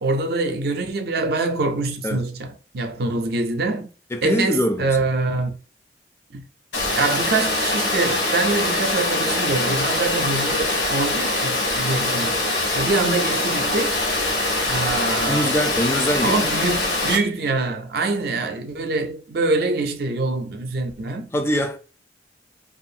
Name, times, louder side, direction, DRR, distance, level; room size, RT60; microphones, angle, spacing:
voice 1, 0.0-3.9 4.2-5.6 6.3-6.4 6.9-12.4 12.7-14.0 14.7-15.6 16.2-21.3, right 3 dB, 60° right, 0.5 m, -24 dB
voice 2, 4.1-5.0 15.3-16.4 21.3-21.8, equal, 15° left, 0.3 m, -23 dB
Water, 6.7-17.2, left 2 dB, 80° left, 0.9 m, -23 dB
2.4 x 2.4 x 2.7 m
head